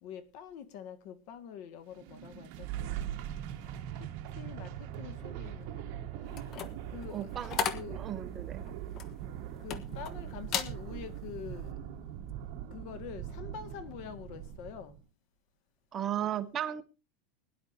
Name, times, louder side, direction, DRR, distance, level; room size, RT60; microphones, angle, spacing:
voice 1, 0.0-3.1 4.0-4.1 4.4-6.0 6.9-7.3 7.7-8.0 9.6-12.2 12.7-15.0, left 8 dB, 55° left, 1.9 m, -46 dB
sound 1, 1.9-15.0, right 11 dB, 55° right, 1.5 m, -41 dB
Fixed-wing aircraft airplane, 2.5-14.5, equal, 5° left, 4.4 m, -57 dB
sound 2, 6.3-10.1 10.4-10.8 11.2-11.5, left 7 dB, 35° left, 1.3 m, -36 dB
voice 2, 7.1-7.6 7.9-8.6 15.9-16.8, right 10 dB, 25° right, 0.9 m, -35 dB
21.5 x 11.0 x 2.8 m
supercardioid pair, 155°, 0 cm